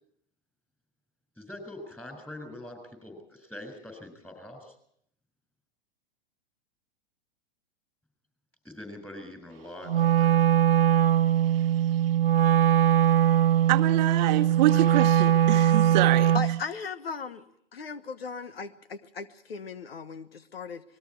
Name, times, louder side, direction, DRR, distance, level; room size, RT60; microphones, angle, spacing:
voice 1, 1.4-4.7 8.6-10.4 14.7-14.8, left 1 dB, 5° left, 6.7 m, -43 dB
Wind instrument woodwind instrument, 9.9-16.6, right 10 dB, 80° right, 0.7 m, -21 dB
voice 2, 13.7-16.3, right 15 dB, 50° right, 1.0 m, -26 dB
voice 3, 16.3-17.4 17.7-20.8, left 5 dB, 85° left, 1.3 m, -37 dB
27.0 x 21.0 x 4.6 m
hypercardioid pair, 110°, 29 cm